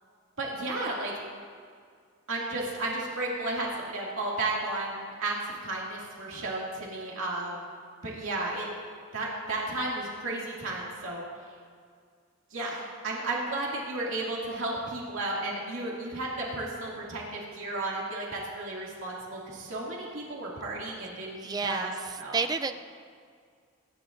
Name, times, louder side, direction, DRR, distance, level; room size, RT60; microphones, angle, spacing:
voice 1, 0.4-1.1 2.3-7.7 8.0-8.7 9.1-11.2 12.5-22.4, right 2 dB, 70° right, -4 dB, 2.4 m, -33 dB
voice 2, 21.3-22.7, right 4 dB, 20° right, 9 dB, 0.4 m, -31 dB
24.0 x 10.5 x 2.6 m, 2.1 s
head